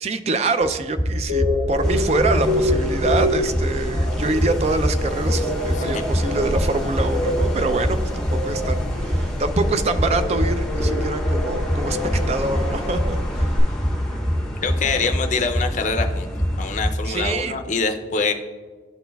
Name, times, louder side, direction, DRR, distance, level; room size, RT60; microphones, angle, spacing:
voice 1, 0.0-12.0 12.3-13.5 17.1-17.6, right 3 dB, 35° right, 10 dB, 0.3 m, -25 dB
sound 1, 0.6-17.3, equal, 20° right, 1.7 m, -25 dB
sound 2, 1.3-13.6, left 1 dB, 65° right, 1.8 m, -27 dB
sound 3, 1.8-16.8, equal, 5° left, 0.7 m, -32 dB
voice 2, 14.6-16.3 16.6-18.3, left 4 dB, 45° left, 6 dB, 0.5 m, -24 dB
12.0 x 4.2 x 2.3 m, 1.5 s
head